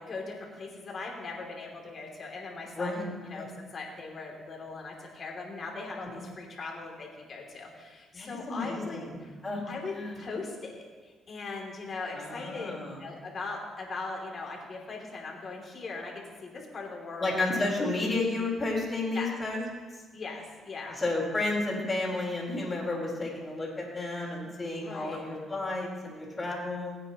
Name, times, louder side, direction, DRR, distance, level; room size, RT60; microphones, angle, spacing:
voice 1, 0.0-9.3 9.7-12.7 13.0-17.4 19.1-19.3 20.1-21.0 24.8-25.2, left 3 dB, 45° left, -1 dB, 2.9 m, -40 dB
voice 2, 2.8-3.4 6.0-6.1 8.1-9.2 9.4-9.6 9.9-10.2 12.1-13.0 17.2-19.7 21.0-27.0, left 2 dB, 25° left, -3 dB, 4.3 m, -32 dB
21.0 x 9.1 x 3.1 m, 1.4 s
cardioid pair, 90°, 0 cm